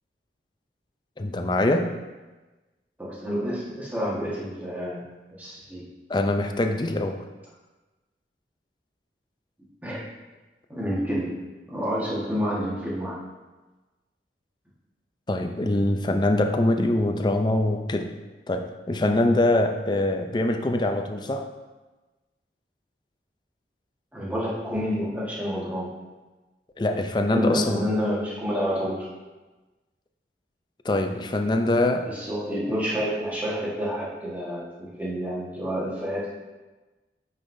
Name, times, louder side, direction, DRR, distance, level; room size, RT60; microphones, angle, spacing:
voice 1, 1.2-2.0 6.1-7.2 15.3-18.1 18.5-21.5 26.8-27.9 30.8-32.1, left 1 dB, 25° left, 5 dB, 0.4 m, -23 dB
voice 2, 3.0-5.0 5.4-5.8 9.8-10.0 10.7-11.4 11.7-13.2 24.1-25.9 27.3-29.1 32.0-36.3, equal, 10° right, -6 dB, 1.4 m, -29 dB
8.5 x 5.5 x 2.6 m, 1.2 s
head